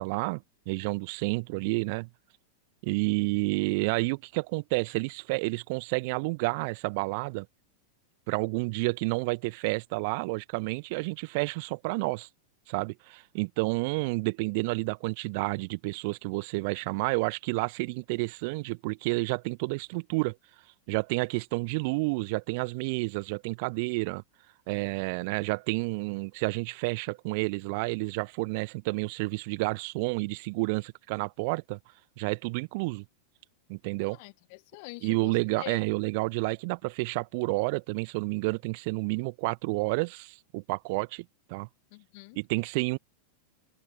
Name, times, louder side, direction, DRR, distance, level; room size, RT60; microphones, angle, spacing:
voice 1, 0.0-2.1 2.8-7.5 8.3-12.3 12.7-20.4 20.9-24.2 24.7-31.8 32.2-33.0 33.7-34.2 35.0-41.7 42.3-43.0, right 28 dB, 45° right, 1.5 m, -30 dB
voice 2, 34.0-35.8 41.9-42.4, left 29 dB, 45° left, 1.3 m, -45 dB
figure-of-eight pair, 90°, 0 cm